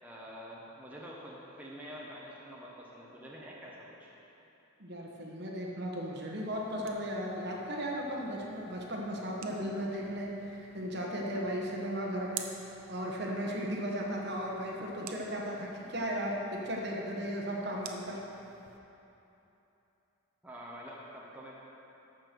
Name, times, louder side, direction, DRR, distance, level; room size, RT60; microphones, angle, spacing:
voice 1, 0.0-4.1 20.4-21.6, equal, 5° right, -5 dB, 0.9 m, -47 dB
voice 2, 4.8-18.2, equal, 50° right, -2 dB, 1.2 m, -36 dB
sound 1, 6.4-18.8, right 8 dB, 80° right, 0.7 m, -51 dB
12.5 x 4.4 x 6.7 m, 3.0 s
head